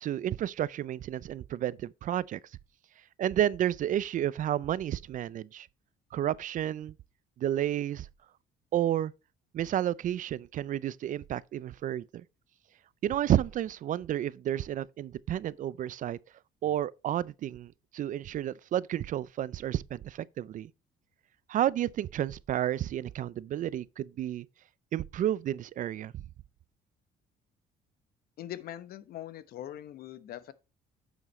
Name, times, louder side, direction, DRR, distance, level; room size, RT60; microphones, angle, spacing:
voice 1, 0.0-2.4 3.2-5.7 6.1-6.9 7.4-8.1 8.7-9.1 9.5-12.2 13.0-16.2 16.6-20.7 21.5-24.5 24.9-26.2, right 11 dB, 50° right, 0.5 m, -31 dB
voice 2, 28.4-30.5, left 12 dB, 65° left, 1.0 m, -42 dB
9.9 x 7.2 x 3.1 m
cardioid pair, 110°, 17 cm